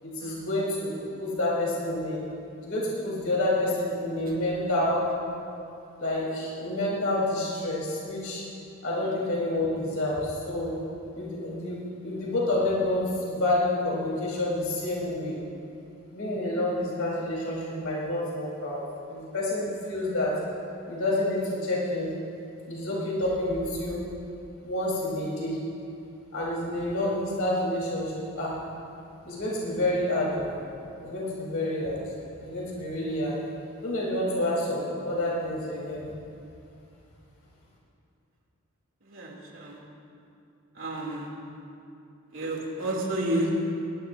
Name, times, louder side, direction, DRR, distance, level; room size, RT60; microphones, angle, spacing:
voice 1, 0.0-2.2 2.6-5.0 6.0-8.4 8.8-10.7 11.1-15.4 16.1-18.8 19.1-20.3 20.9-22.1 22.7-24.0 24.6-25.6 26.3-28.6 29.2-30.5 31.0-32.0 32.4-33.4 33.8-36.1, left 1 dB, 80° left, -6 dB, 4.1 m, -28 dB
voice 2, 39.1-39.8 40.8-41.3 42.3-43.5, right 1 dB, 65° right, -2 dB, 2.9 m, -30 dB
22.0 x 18.0 x 2.7 m, 2.6 s
head